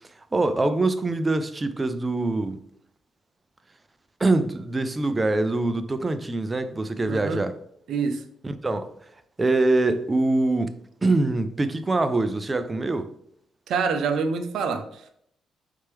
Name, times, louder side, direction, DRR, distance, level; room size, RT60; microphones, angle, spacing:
voice 1, 0.3-2.6 4.2-7.5 8.4-8.9 9.4-10.7 11.0-13.1, right 2 dB, 20° right, 0.4 m, -24 dB
voice 2, 7.0-7.4 7.9-8.2 13.7-15.1, right 5 dB, 70° right, 0.6 m, -26 dB
4.2 x 3.3 x 3.4 m
cardioid pair, 90°, 0 cm